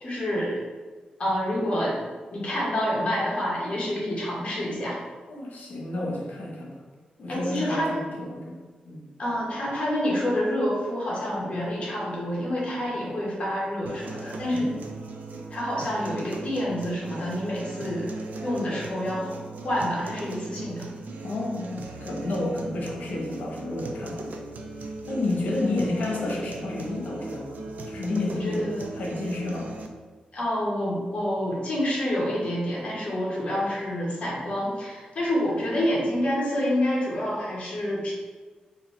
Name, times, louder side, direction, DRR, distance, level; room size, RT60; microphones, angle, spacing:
voice 1, 0.0-0.6 1.2-2.0 2.3-5.0 7.3-8.1 9.2-14.7 15.5-18.1 18.4-19.4 19.6-20.8 28.4-28.9 30.3-38.1, equal, 45° left, -6 dB, 1.5 m, -28 dB
voice 2, 5.3-6.8 7.2-8.6 8.8-9.1 14.5-14.8 21.2-24.3 25.1-27.6 27.9-28.6 28.9-29.7, left 2 dB, 75° left, -2 dB, 1.1 m, -30 dB
sound 1, 13.9-29.9, right 3 dB, 70° right, 0.5 m, -38 dB
4.7 x 2.8 x 3.3 m, 1.4 s
wide cardioid pair, 160°, 3 cm